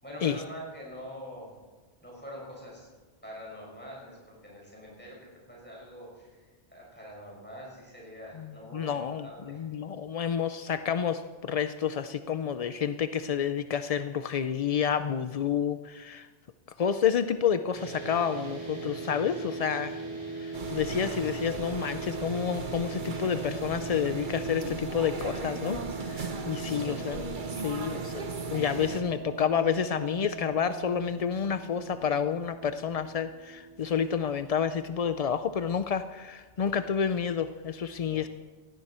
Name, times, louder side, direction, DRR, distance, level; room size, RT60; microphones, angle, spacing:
voice 1, 0.0-1.5 2.0-2.9 3.2-9.6 19.9-20.2 26.7-27.0 28.6-28.9 38.0-38.2, equal, 10° left, -4 dB, 6.0 m, -45 dB
voice 2, 8.7-16.3 16.8-20.0 20.4-27.2 27.6-28.2 28.5-38.3, left 7 dB, 60° left, 11 dB, 0.3 m, -29 dB
sound 1, 17.7-34.1, right 4 dB, 20° right, 5.6 m, -41 dB
sound 2, 20.5-29.0, right 3 dB, 45° right, 1.2 m, -37 dB
sound 3, 20.5-31.0, right 4 dB, 70° right, 2.7 m, -45 dB
17.0 x 16.5 x 4.3 m, 1.4 s
omnidirectional pair, 1.2 m